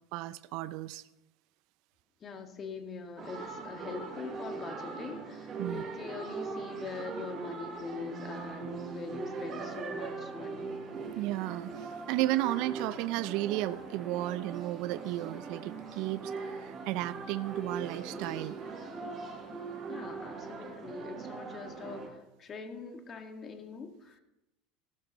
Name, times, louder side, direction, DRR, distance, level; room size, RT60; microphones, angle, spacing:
voice 1, 0.1-1.0 5.6-5.8 11.2-18.6, right 16 dB, 65° right, 17 dB, 0.4 m, -33 dB
voice 2, 2.2-10.8 19.9-24.2, left 4 dB, 35° left, 5 dB, 1.7 m, -43 dB
sound 1, 3.2-22.1, right 4 dB, 45° right, 4.6 m, -41 dB
16.0 x 11.5 x 3.0 m, 0.95 s
hypercardioid pair, 85°, 0 cm